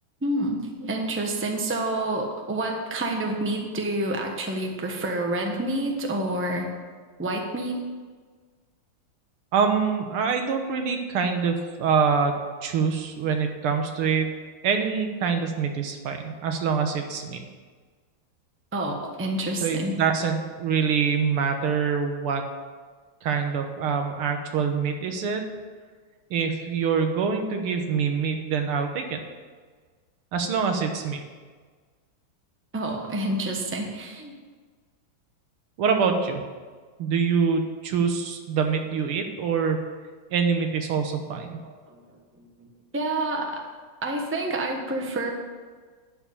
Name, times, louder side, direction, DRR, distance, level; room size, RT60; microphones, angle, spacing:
voice 1, 0.2-6.7 7.2-7.8 18.7-20.0 32.7-34.4 41.6-42.0 42.4-42.7 42.9-43.6 44.0-45.3, right 1 dB, 10° right, 1 dB, 0.7 m, -28 dB
voice 2, 9.5-12.3 12.6-14.3 14.6-17.4 19.6-22.4 23.2-25.4 26.3-29.2 30.3-31.2 35.8-36.4 37.0-39.8 40.3-41.6, right 6 dB, 85° right, 5 dB, 2.0 m, -25 dB
12.0 x 4.8 x 8.4 m, 1.5 s
omnidirectional pair, 2.3 m